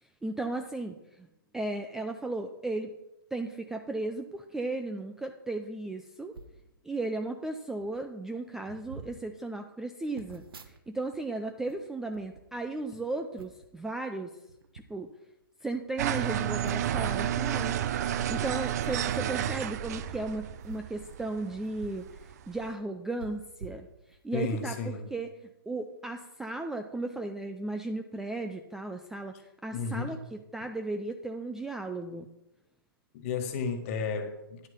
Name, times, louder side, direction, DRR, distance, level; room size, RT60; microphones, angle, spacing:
voice 1, 0.2-1.3 1.5-3.0 3.3-6.4 6.8-14.4 14.9-15.1 15.6-23.9 24.2-24.8 25.1-25.3 25.7-32.3, right 2 dB, 5° right, 6 dB, 0.3 m, -35 dB
sound 1, 6.3-6.6 7.4-7.5 7.8-8.0 8.6-9.2 10.2-11.2 11.5-12.9 13.4-13.7 14.5-14.9 15.4-15.5 15.7-15.8 16.6-17.1 18.2-18.3 19.8-20.0 20.6-22.1 22.4-22.5 23.2-24.4 24.9-25.0, right 4 dB, 70° right, 1.1 m, -47 dB
sound 2, 16.0-22.7, right 10 dB, 45° right, 0.6 m, -31 dB
voice 2, 24.3-25.1 29.7-30.2 33.1-34.7, left 5 dB, 35° left, 7 dB, 1.4 m, -33 dB
10.0 x 6.4 x 5.5 m, 0.91 s
hypercardioid pair, 135°, 12 cm